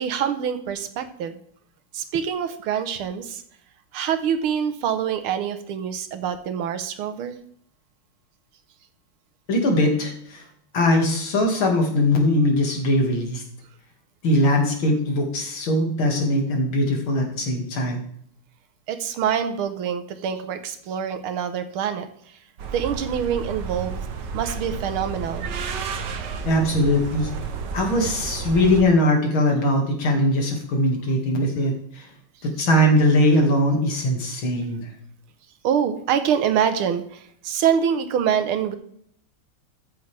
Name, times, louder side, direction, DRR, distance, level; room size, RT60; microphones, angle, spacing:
voice 1, 0.0-1.4 1.9-3.4 3.9-7.4 18.9-22.1 22.7-24.0 24.3-25.5 35.6-38.8, right 8 dB, 80° right, 9 dB, 1.8 m, -25 dB
voice 2, 9.5-10.4 10.7-13.4 14.2-18.0 26.4-27.3 27.7-32.1 32.4-34.9, left 1 dB, 70° left, 1 dB, 2.9 m, -21 dB
sound 1, 22.6-28.8, right 5 dB, 60° right, 1.5 m, -31 dB
14.0 x 6.8 x 3.4 m, 0.65 s
omnidirectional pair, 2.3 m